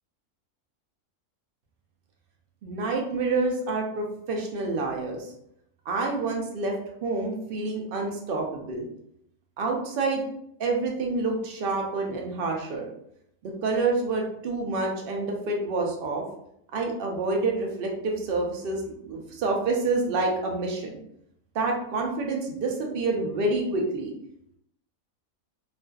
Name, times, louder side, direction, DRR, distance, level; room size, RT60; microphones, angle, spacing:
voice 1, 2.6-5.3 5.9-6.7 7.0-8.9 9.6-10.2 10.6-12.9 13.4-16.2 16.7-21.0 21.5-24.1, right 3 dB, 75° right, 0 dB, 0.5 m, -28 dB
2.5 x 2.2 x 2.2 m, 0.73 s
omnidirectional pair, 1.4 m